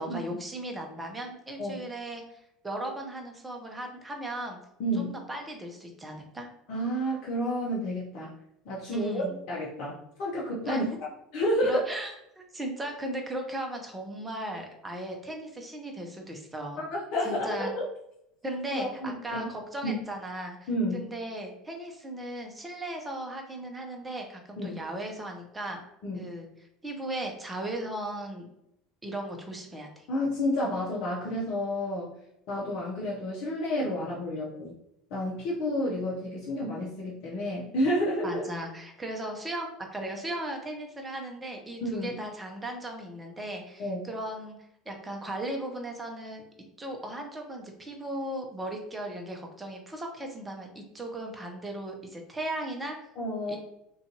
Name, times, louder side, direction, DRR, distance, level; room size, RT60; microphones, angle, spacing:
voice 1, 0.0-4.6 5.0-6.5 8.9-9.3 10.7-11.0 11.6-16.8 17.2-17.7 18.4-25.8 26.1-26.5 26.8-28.5 29.0-30.1 38.2-44.6 44.9-46.4 46.8-53.0 53.5-53.6, right 1 dB, 15° right, 2 dB, 0.7 m, -37 dB
voice 2, 4.8-5.2 6.7-8.3 8.6-10.9 11.3-11.8 16.8-17.8 18.7-19.5 19.8-20.0 20.7-21.1 24.6-24.8 26.0-26.3 30.1-32.1 32.5-34.7 35.1-38.5 41.8-42.2 43.8-44.0 53.2-53.6, equal, 55° left, -6 dB, 0.7 m, -30 dB
2.5 x 2.3 x 2.8 m, 0.79 s
figure-of-eight pair, 70°, 0 cm